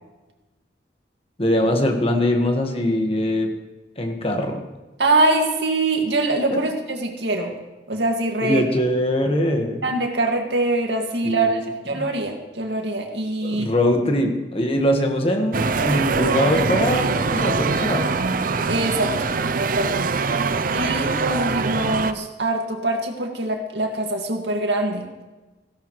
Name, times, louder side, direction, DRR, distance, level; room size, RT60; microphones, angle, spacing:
voice 1, 1.4-3.5 4.0-4.6 6.5-6.6 8.4-9.8 11.2-11.6 11.9-12.0 13.4-18.1, left 1 dB, 35° left, 3 dB, 1.6 m, -22 dB
voice 2, 5.0-7.6 7.9-8.6 9.8-13.7 18.7-19.1 19.6-20.1 20.7-25.2, right 2 dB, 80° right, 2 dB, 2.1 m, -23 dB
sound 1, 15.5-22.1, right 4 dB, 50° right, 0.5 m, -23 dB
17.0 x 16.0 x 3.2 m, 1.1 s
head